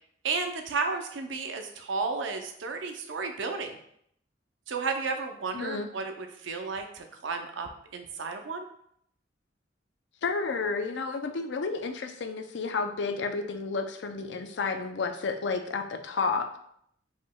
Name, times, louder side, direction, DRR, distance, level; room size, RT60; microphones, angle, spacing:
voice 1, 0.2-3.8 4.7-8.7, right 4 dB, 80° right, 5 dB, 0.6 m, -33 dB
voice 2, 5.5-5.9 10.2-16.5, left 4 dB, 65° left, 7 dB, 0.5 m, -31 dB
5.1 x 3.6 x 2.2 m, 0.70 s
head